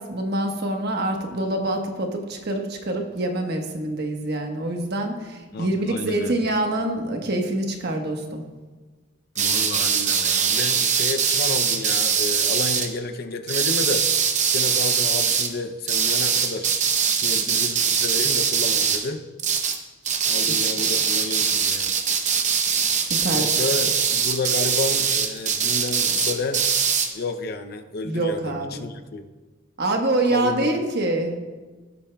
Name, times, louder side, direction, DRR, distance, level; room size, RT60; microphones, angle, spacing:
voice 1, 0.0-8.4 20.5-20.6 22.9-23.7 28.0-28.9 29.8-31.4, right 1 dB, 55° right, 3 dB, 1.2 m, -26 dB
voice 2, 5.5-6.4 9.4-14.1 14.5-16.7 17.2-19.2 20.3-22.0 23.3-26.7 27.1-29.3 30.2-30.7, left 3 dB, 50° left, 7 dB, 0.6 m, -31 dB
sound 1, 9.4-12.9 13.5-15.5 15.9-19.1 19.4-19.8 20.1-27.1, right 7 dB, 35° right, 0.8 m, -22 dB
17.0 x 8.3 x 2.3 m, 1.3 s
head